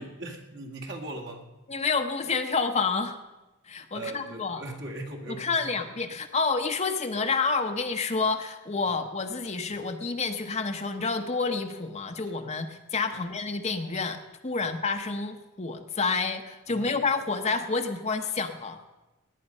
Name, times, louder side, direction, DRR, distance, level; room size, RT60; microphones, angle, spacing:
voice 1, 0.0-1.5 3.9-5.9 8.9-9.0 9.7-9.8 13.1-13.3 14.6-14.8 16.7-17.0, right 2 dB, 55° right, 3 dB, 1.9 m, -40 dB
voice 2, 1.7-3.2 3.7-4.6 5.3-18.8, left 4 dB, 30° left, 6 dB, 0.8 m, -29 dB
17.5 x 10.0 x 5.4 m, 1.1 s
head